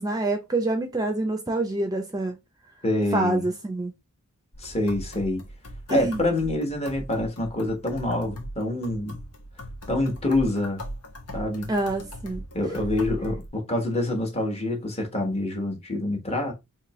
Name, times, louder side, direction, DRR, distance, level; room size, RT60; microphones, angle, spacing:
voice 1, 0.0-2.4 3.1-3.9 5.9-6.2 11.7-12.4, right 2 dB, 15° right, 0.5 m, -26 dB
voice 2, 2.8-3.4 4.6-5.4 5.9-9.2 9.9-10.8 11.3-11.7 12.5-16.5, left 1 dB, 30° left, 1.1 m, -26 dB
sound 1, 4.5-13.5, equal, 85° left, 1.2 m, -39 dB
4.2 x 2.8 x 3.1 m
head